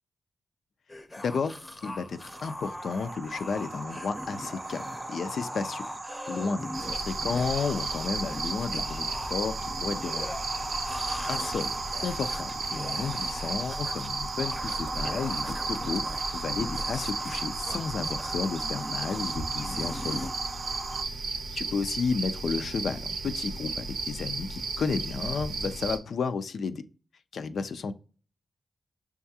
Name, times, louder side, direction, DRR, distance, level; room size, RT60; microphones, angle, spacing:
sound 1, 0.9-20.3, left 1 dB, 25° left, 0.6 m, -42 dB
voice 1, 1.2-1.5 1.8-10.3 11.3-11.7 12.0-16.0 16.3-20.3 21.5-26.8 27.3-27.9, left 5 dB, 80° left, 11 dB, 0.4 m, -32 dB
sound 2, 2.1-21.0, right 2 dB, 35° right, 0.4 m, -38 dB
sound 3, 6.7-26.0, right 3 dB, 85° right, 0.6 m, -34 dB
6.3 x 2.3 x 2.7 m, 0.38 s
cardioid pair, 55°, 0 cm